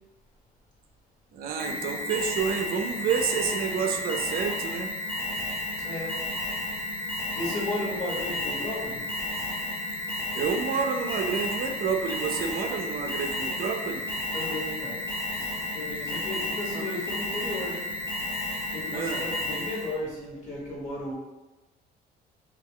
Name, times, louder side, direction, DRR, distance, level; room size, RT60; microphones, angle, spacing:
voice 1, 1.3-4.9 10.3-14.0 16.7-16.8 18.9-19.2, right 6 dB, 60° right, 4 dB, 0.4 m, -29 dB
Alarm, 1.6-20.0, left 1 dB, 15° left, 0.7 m, -32 dB
voice 2, 5.8-6.2 7.3-9.0 14.3-15.0 15.7-17.9 18.7-21.1, left 2 dB, 45° left, -4 dB, 1.1 m, -34 dB
2.3 x 2.1 x 3.6 m, 1.1 s
cardioid pair, 110°, 17 cm